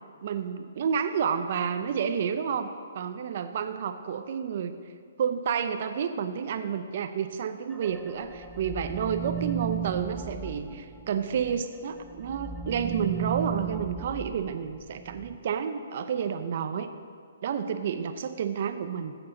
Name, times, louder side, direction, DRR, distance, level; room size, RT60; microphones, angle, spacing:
voice 1, 0.2-4.8 5.2-16.9 17.4-19.2, right 7 dB, 50° right, 8 dB, 0.6 m, -30 dB
sound 1, 7.7-11.6 12.0-15.4, right 8 dB, 5° right, 0.4 m, -36 dB
14.0 x 7.8 x 3.9 m, 2.1 s
hypercardioid pair, 155°, 0 cm